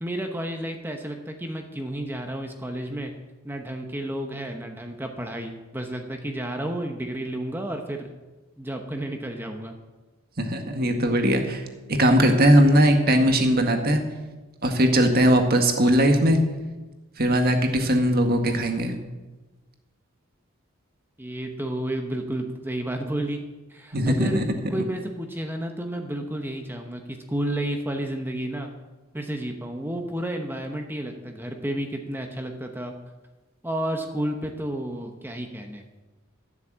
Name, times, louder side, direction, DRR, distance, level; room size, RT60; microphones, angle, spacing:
voice 1, 0.0-3.1 3.4-8.1 8.6-9.7 21.2-23.4 23.7-24.4 24.7-28.7 29.1-32.9 33.6-35.8, right 1 dB, 10° right, 3 dB, 1.0 m, -31 dB
voice 2, 10.4-11.6 11.9-14.0 14.6-16.4 17.2-18.9 23.9-24.9, equal, 45° right, 5 dB, 1.7 m, -20 dB
13.0 x 8.1 x 7.4 m, 1.2 s
head